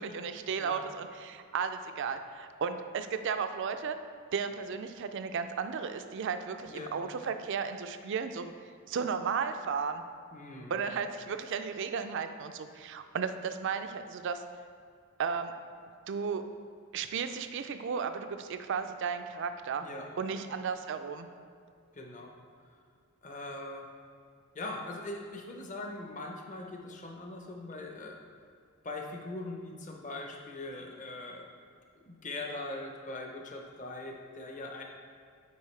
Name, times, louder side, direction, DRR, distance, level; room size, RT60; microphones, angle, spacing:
voice 1, 0.0-4.0 4.3-8.5 8.9-10.0 10.7-14.4 15.2-15.5 16.1-16.4 16.9-19.8 20.2-21.3, right 6 dB, 55° right, 9 dB, 0.4 m, -34 dB
voice 2, 6.7-7.4 10.3-10.8 19.8-20.4 21.9-22.4 23.2-23.9 24.5-28.2 28.8-31.5 31.9-34.8, left 2 dB, 35° left, 1 dB, 0.7 m, -41 dB
8.2 x 4.9 x 3.2 m, 2.2 s
head